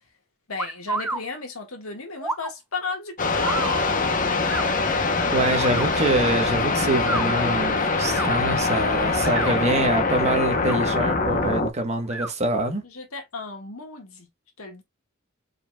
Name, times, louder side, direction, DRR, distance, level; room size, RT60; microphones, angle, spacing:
voice 1, 0.5-4.1 4.5-5.1 8.6-9.6 12.8-14.3 14.6-14.8, left 3 dB, 85° left, 1.8 m, -35 dB
sound 1, 0.6-1.2 2.2-2.5 3.4-3.7 4.5-4.7 5.6-5.9 7.0-7.3 8.0-8.3 9.1-9.6 10.4-10.8 12.1-12.3, right 2 dB, 10° right, 0.6 m, -30 dB
sound 2, 3.2-11.7, left 3 dB, 40° left, 0.9 m, -23 dB
voice 2, 5.3-12.8, right 2 dB, 30° right, 1.2 m, -25 dB
5.0 x 4.5 x 2.3 m
head